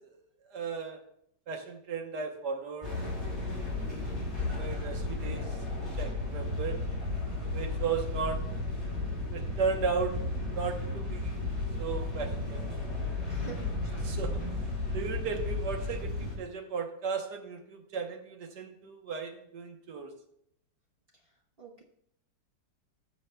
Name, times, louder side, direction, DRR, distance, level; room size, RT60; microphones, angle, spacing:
voice 1, 0.5-1.0 1.5-3.2 4.0-4.1 4.4-6.8 7.5-8.4 9.3-12.7 14.0-14.4 14.9-20.1, right 5 dB, 65° right, 4 dB, 1.6 m, -36 dB
sound 1, 2.8-16.3, left 2 dB, 15° right, 3.4 m, -34 dB
voice 2, 13.2-13.7 21.6-21.8, right 5 dB, 35° right, -2 dB, 1.2 m, -45 dB
18.5 x 7.0 x 2.3 m, 0.72 s
omnidirectional pair, 2.0 m